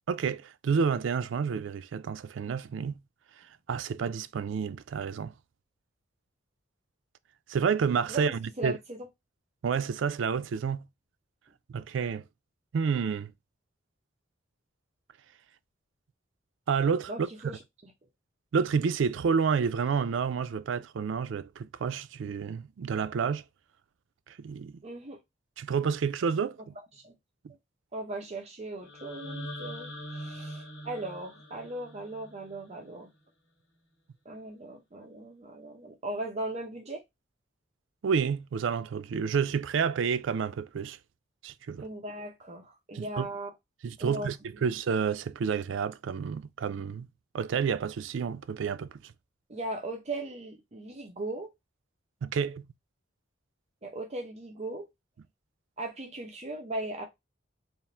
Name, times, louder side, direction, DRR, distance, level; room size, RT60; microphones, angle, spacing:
voice 1, 0.1-3.0 3.7-5.3 7.5-8.8 9.6-10.8 11.7-12.3 12.7-13.3 16.7-17.3 18.5-23.4 24.3-24.8 25.6-26.6 38.0-41.0 41.4-41.8 42.9-43.3 43.8-47.1 47.3-49.1 52.2-52.6, right 6 dB, 75° right, 0.4 m, -29 dB
voice 2, 8.1-9.0 17.1-17.9 24.8-25.2 26.9-27.1 27.9-33.1 34.2-37.0 41.8-43.5 44.0-44.6 49.5-51.5 53.8-54.9 55.8-57.0, right 2 dB, 35° right, 0.6 m, -38 dB
sound 1, 28.8-32.9, equal, 90° left, 1.3 m, -42 dB
3.5 x 2.5 x 4.2 m
head